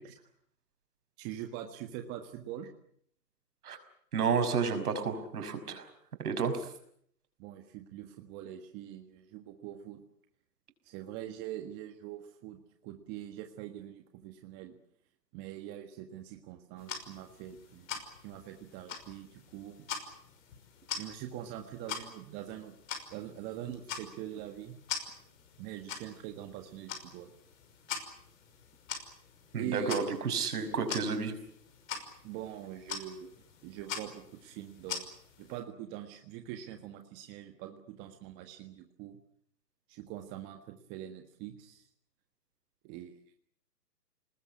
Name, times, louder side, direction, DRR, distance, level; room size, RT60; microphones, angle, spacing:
voice 1, 1.2-2.7 7.4-10.0 10.8-14.7 15.3-19.8 20.9-22.7 23.1-24.7 25.6-27.3 29.5-30.0 32.2-33.3 33.6-35.1 35.4-39.2 39.9-41.8 42.8-43.3, right 11 dB, 20° right, 5 dB, 1.6 m, -43 dB
voice 2, 4.1-5.9 6.2-6.7 29.5-31.3, right 5 dB, 65° right, 8 dB, 5.7 m, -31 dB
sound 1, 16.8-35.6, left 6 dB, 50° left, 5.8 m, -44 dB
26.5 x 20.0 x 8.6 m, 0.67 s
hypercardioid pair, 145°, 49 cm